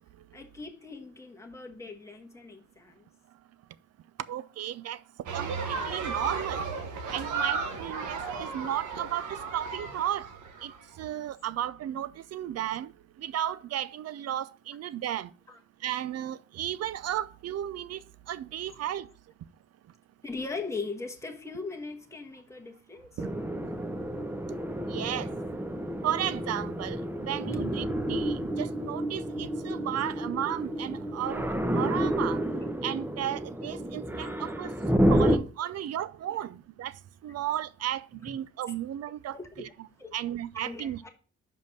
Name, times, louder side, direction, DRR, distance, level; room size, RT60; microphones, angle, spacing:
voice 1, 0.3-3.1 15.5-15.6 20.2-23.2 35.6-35.7 36.3-36.4 38.2-38.3 39.3-39.6 40.0-40.2 40.5-41.1, left 3 dB, 10° left, 1.2 m, -40 dB
voice 2, 4.3-5.0 5.3-6.6 7.1-10.3 10.6-10.7 11.0-12.9 13.2-15.3 15.8-18.0 18.3-19.1 23.2-23.3 24.9-25.3 26.0-32.4 32.8-34.7 35.1-36.9 37.2-41.0, right 11 dB, 55° right, 0.5 m, -34 dB
sound 1, 5.3-10.8, right 4 dB, 80° right, 1.3 m, -34 dB
sound 2, 23.2-35.4, equal, 5° right, 0.9 m, -30 dB
5.5 x 5.2 x 6.1 m
cardioid pair, 90°, 30 cm